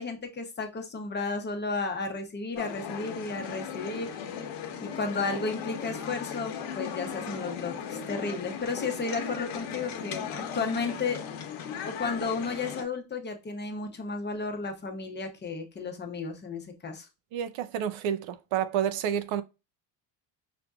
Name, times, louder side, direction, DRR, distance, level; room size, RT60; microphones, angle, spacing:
voice 1, 0.0-4.2 4.8-11.2 11.8-17.1, left 4 dB, 25° left, 0.7 m, -33 dB
sound 1, 2.6-12.8, left 7 dB, 80° left, 0.9 m, -37 dB
voice 2, 17.3-19.4, right 9 dB, 80° right, 0.6 m, -29 dB
5.1 x 2.6 x 2.3 m
cardioid pair, 120°, 46 cm